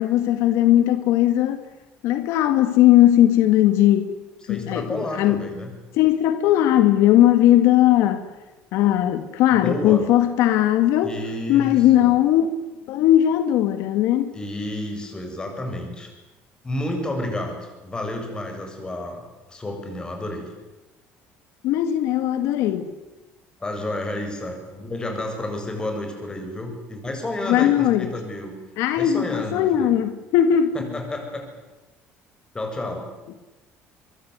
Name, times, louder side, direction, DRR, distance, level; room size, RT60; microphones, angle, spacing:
voice 1, 0.0-1.6 2.0-4.1 4.5-5.5 5.9-8.3 8.7-11.1 11.5-12.5 12.9-14.4 21.6-22.9 27.4-28.1 28.8-30.9, left 12 dB, 80° left, 1.9 m, -18 dB
voice 2, 4.5-5.7 9.5-10.0 11.0-12.1 14.3-16.1 16.6-20.5 23.6-28.5 29.0-29.9 30.7-31.5 32.5-33.1, left 1 dB, 15° left, 7.8 m, -30 dB
23.5 x 23.5 x 9.6 m
cardioid pair, 125°, 5 cm